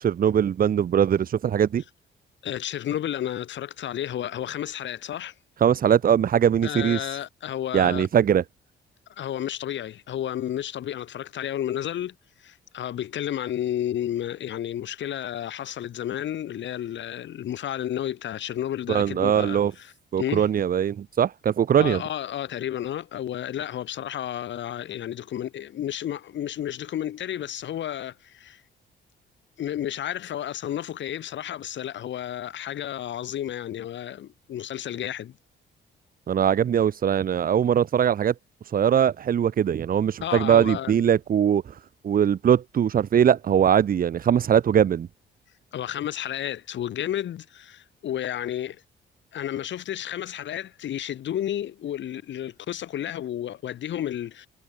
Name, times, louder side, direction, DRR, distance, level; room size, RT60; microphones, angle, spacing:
voice 1, 0.0-1.8 5.6-7.2 7.7-8.4 18.9-19.7 20.1-22.0 36.3-38.3 38.6-41.7 42.0-45.1, right 9 dB, 45° right, 0.8 m, -21 dB
voice 2, 2.4-5.3 6.6-8.1 9.1-12.1 12.4-20.5 21.8-28.6 29.6-35.3 40.2-41.0 45.7-48.8 49.3-54.5, left 11 dB, 70° left, 2.4 m, -32 dB
cardioid pair, 90°, 20 cm